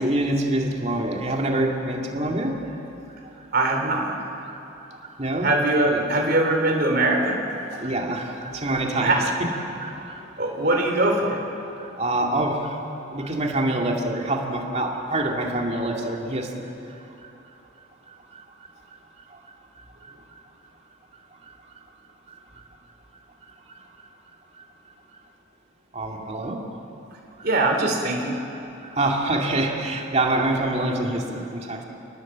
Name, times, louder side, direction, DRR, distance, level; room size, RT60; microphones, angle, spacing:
voice 1, 0.0-2.6 4.5-4.6 5.2-5.5 5.9-6.1 7.7-10.2 11.8-12.8 13.1-16.7 25.9-26.6 28.9-31.8, right 1 dB, 35° right, 1 dB, 2.5 m, -26 dB
voice 2, 3.5-4.2 5.4-7.4 8.9-9.3 10.4-11.4 27.4-28.4, right 2 dB, 50° right, 1 dB, 3.7 m, -22 dB
29.5 x 19.5 x 7.6 m, 2.9 s
head